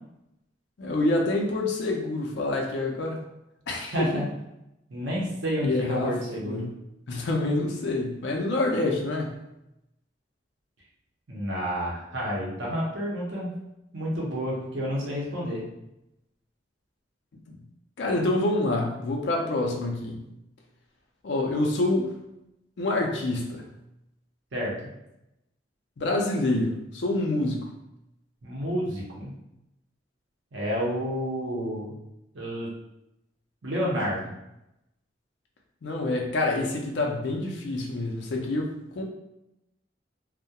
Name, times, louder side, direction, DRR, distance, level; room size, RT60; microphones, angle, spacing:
voice 1, 0.8-3.2 3.7-4.2 5.6-6.2 6.4-6.7 7.1-9.3 18.0-20.2 21.2-22.1 22.8-23.6 26.0-27.7 35.8-39.0, left 2 dB, 70° left, 0 dB, 0.4 m, -27 dB
voice 2, 3.9-4.3 4.9-6.7 11.3-13.5 13.9-15.6 24.5-24.9 28.4-29.3 30.5-31.9 32.3-32.7 33.6-34.3, equal, 85° right, -4 dB, 0.7 m, -30 dB
2.2 x 2.1 x 2.7 m, 0.87 s
head